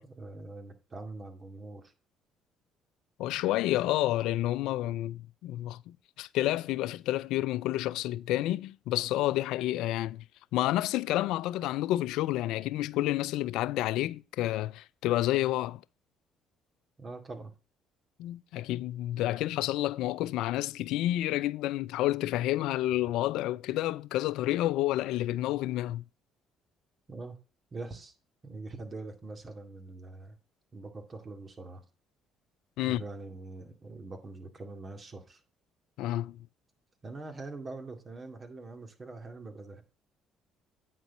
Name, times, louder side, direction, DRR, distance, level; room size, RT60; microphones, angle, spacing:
voice 1, 0.0-1.9 17.0-17.5 27.1-27.4 27.7-28.2 28.4-30.4 30.7-31.8 32.8-35.4 37.0-39.8, right 3 dB, 35° right, 2.2 m, -43 dB
voice 2, 3.2-10.2 10.5-15.8 18.2-26.0 32.8-33.0 36.0-36.4, left 15 dB, 75° left, 0.3 m, -30 dB
9.1 x 4.4 x 5.2 m
hypercardioid pair, 60°, 0 cm